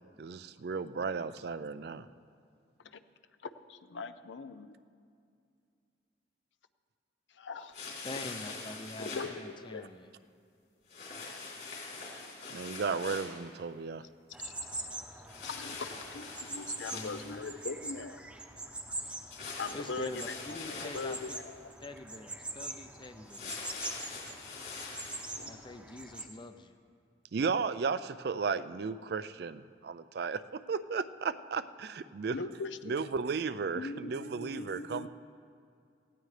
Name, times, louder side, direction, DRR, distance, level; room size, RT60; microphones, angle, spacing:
voice 1, 0.2-2.1 12.5-14.0 27.3-32.4 32.9-35.1, right 5 dB, 55° right, 13 dB, 0.4 m, -34 dB
voice 2, 3.4-4.7 7.3-7.8 9.0-9.9 11.9-12.0 14.4-15.0 15.4-18.3 19.6-21.7 25.4-25.8 32.3-33.0 33.7-35.1, left 4 dB, 80° left, 11 dB, 0.6 m, -41 dB
sound 1, 7.7-9.3 10.9-13.4 15.3-17.6 19.3-21.3 23.2-25.3, left 4 dB, 60° left, 3.5 m, -43 dB
voice 3, 8.0-10.1 11.0-11.1 16.9-17.4 19.7-21.2 21.8-23.7 25.5-26.8, left 2 dB, 25° left, 8 dB, 0.6 m, -45 dB
sound 2, 14.3-26.3, right 2 dB, 5° right, 0.8 m, -43 dB
18.0 x 16.0 x 3.3 m, 2.4 s
head